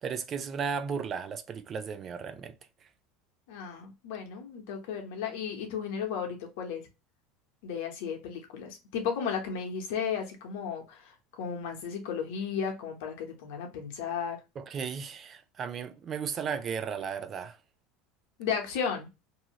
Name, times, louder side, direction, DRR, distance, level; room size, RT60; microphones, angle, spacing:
voice 1, 0.0-2.6 14.6-17.6, right 6 dB, 35° right, 0.4 m, -35 dB
voice 2, 3.5-6.8 7.6-14.4 18.4-19.1, left 7 dB, 75° left, 1.0 m, -34 dB
2.7 x 2.4 x 2.9 m
supercardioid pair, 110°, 0 cm